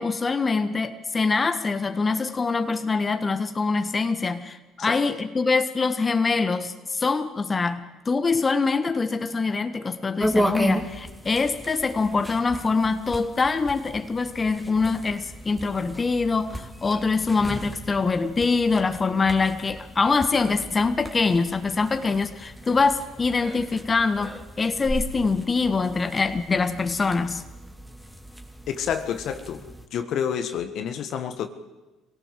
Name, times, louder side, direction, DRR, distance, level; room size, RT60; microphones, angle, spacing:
voice 1, 0.0-27.4, left 4 dB, 30° left, 9 dB, 1.6 m, -24 dB
sound 1, 10.2-29.9, equal, ahead, 2.9 m, -35 dB
voice 2, 28.7-29.6 29.9-31.5, left 8 dB, 60° left, 8 dB, 1.6 m, -29 dB
23.5 x 17.5 x 7.7 m, 1.1 s
hypercardioid pair, 55°, 0 cm